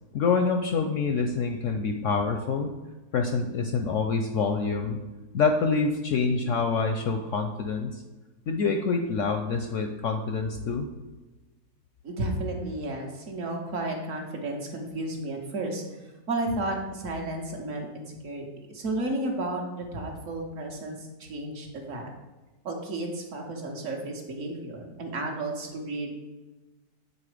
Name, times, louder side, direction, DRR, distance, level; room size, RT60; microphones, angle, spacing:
voice 1, 0.1-2.7 3.1-5.0 5.3-8.0 8.5-10.9, left 4 dB, 70° left, 5 dB, 0.8 m, -26 dB
voice 2, 12.0-15.8 16.3-22.1 22.6-26.2, right 2 dB, 55° right, 1 dB, 1.3 m, -33 dB
7.7 x 4.1 x 4.9 m, 1.2 s
omnidirectional pair, 1.7 m